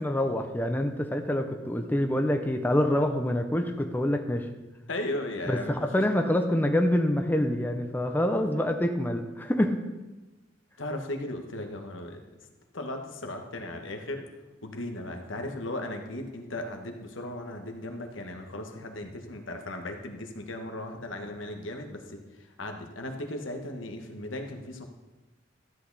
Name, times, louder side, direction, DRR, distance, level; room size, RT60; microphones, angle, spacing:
voice 1, 0.0-4.5 5.5-9.8, left 1 dB, 10° left, 5 dB, 0.6 m, -26 dB
voice 2, 4.9-5.9 6.1-6.3 10.8-12.2 12.7-14.2 14.6-24.8, left 1 dB, 85° left, 4 dB, 1.3 m, -36 dB
13.0 x 8.2 x 4.0 m, 1.1 s
head